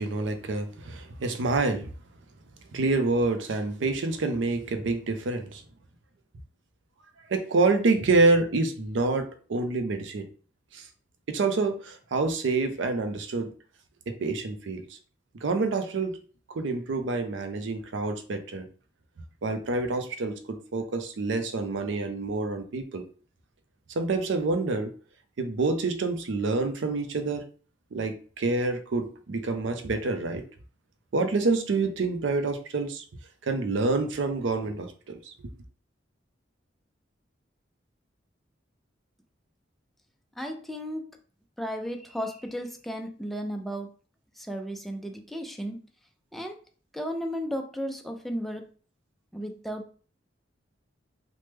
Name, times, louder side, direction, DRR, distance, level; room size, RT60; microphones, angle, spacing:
voice 1, 0.0-1.9 2.7-5.6 7.3-10.3 10.7-10.9 11.3-13.5 14.1-15.0 15.4-16.2 16.5-18.7 19.4-23.1 23.9-24.9 25.4-27.4 27.9-30.4 31.1-33.0 33.4-35.3, right 3 dB, 85° right, 0.5 m, -27 dB
voice 2, 40.4-41.2 41.6-43.9 44.4-45.8 46.3-46.6 46.9-48.7 49.3-49.9, equal, ahead, 0.3 m, -34 dB
3.1 x 2.1 x 3.2 m
head